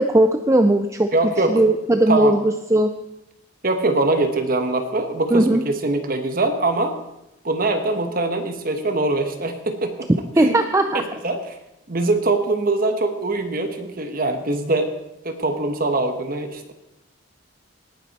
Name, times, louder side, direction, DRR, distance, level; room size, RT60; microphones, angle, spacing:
voice 1, 0.0-1.1 1.5-2.9 5.3-5.6 10.4-11.0, right 1 dB, 15° right, 7 dB, 0.4 m, -18 dB
voice 2, 1.1-1.6 2.1-2.4 3.6-6.9 7.4-10.1 10.4-10.6 10.9-11.6 11.9-14.9 15.2-16.7, right 2 dB, 45° right, 7 dB, 1.1 m, -23 dB
18.5 x 9.7 x 4.1 m, 0.89 s
head